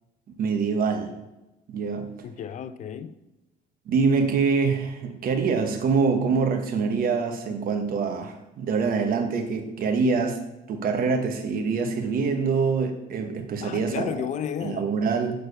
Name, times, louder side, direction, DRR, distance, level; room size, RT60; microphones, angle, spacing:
voice 1, 0.4-1.2 1.7-2.1 3.9-14.1 14.6-15.4, right 5 dB, 60° right, 1.1 m, -25 dB
voice 2, 2.2-3.2 13.6-14.9, left 8 dB, 45° left, 0.5 m, -32 dB
6.5 x 4.6 x 5.2 m
cardioid pair, 110°, 17 cm